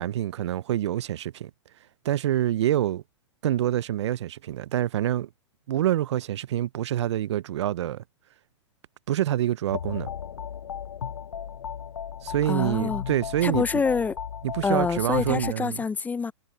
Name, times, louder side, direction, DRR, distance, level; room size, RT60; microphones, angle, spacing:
voice 1, 0.0-1.5 2.0-3.0 3.4-5.3 5.7-8.0 9.1-10.1 12.2-13.6 14.4-15.8, right 12 dB, 70° right, 0.6 m, -26 dB
sound 1, 9.7-15.5, left 8 dB, 85° left, 0.7 m, -35 dB
voice 2, 12.5-13.0 13.4-14.2 14.6-16.3, left 5 dB, 10° left, 0.5 m, -26 dB
hypercardioid pair, 125°, 15 cm